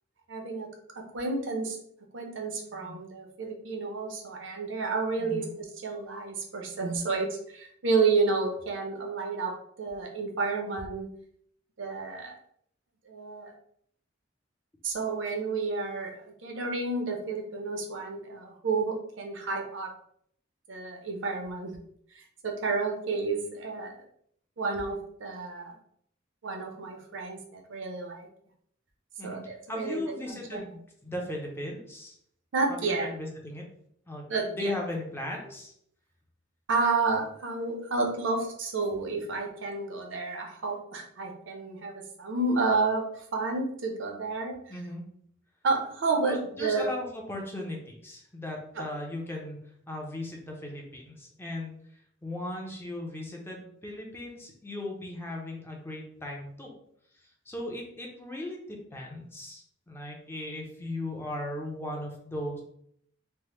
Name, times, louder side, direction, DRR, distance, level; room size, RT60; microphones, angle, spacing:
voice 1, 0.3-0.7 0.9-1.8 2.1-11.1 11.8-12.3 13.1-13.5 14.8-19.9 20.7-21.7 22.4-23.9 24.6-25.7 26.4-28.3 29.2-30.0 30.3-30.6 32.5-33.1 34.3-34.7 36.7-44.6 45.6-46.9, right 3 dB, 70° right, 2 dB, 0.6 m, -30 dB
voice 2, 5.2-5.5 29.2-32.2 32.7-33.6 34.1-35.7 44.7-45.0 46.2-51.7 52.2-56.7 57.5-62.6, left 1 dB, 10° left, 0 dB, 0.5 m, -37 dB
3.3 x 2.0 x 2.9 m, 0.67 s
head